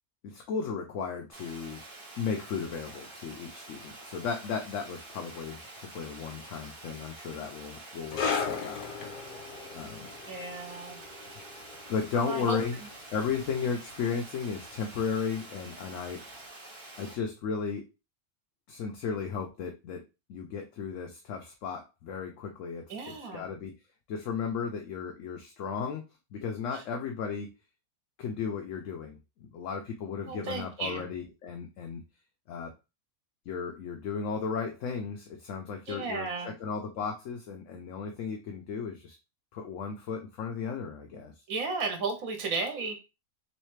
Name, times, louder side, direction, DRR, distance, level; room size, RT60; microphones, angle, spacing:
voice 1, 0.2-1.8 2.2-9.1 9.7-10.1 11.9-12.8 13.1-16.2 17.0-17.8 18.7-20.0 20.3-23.7 24.1-26.0 26.3-27.5 28.2-32.0 32.5-32.7 33.5-39.2 39.5-41.3, left 6 dB, 70° left, 3 dB, 0.9 m, -35 dB
Water, 1.3-17.2, right 2 dB, 40° right, 1.3 m, -47 dB
sound 1, 8.1-15.1 15.4-15.6 16.3-16.4, left 5 dB, 90° left, 0.4 m, -38 dB
voice 2, 10.3-11.0 12.1-12.6 22.9-23.4 30.3-31.0 35.9-36.5 41.5-43.0, right 4 dB, 75° right, 4 dB, 1.3 m, -34 dB
3.2 x 3.2 x 3.1 m, 0.27 s
omnidirectional pair, 1.5 m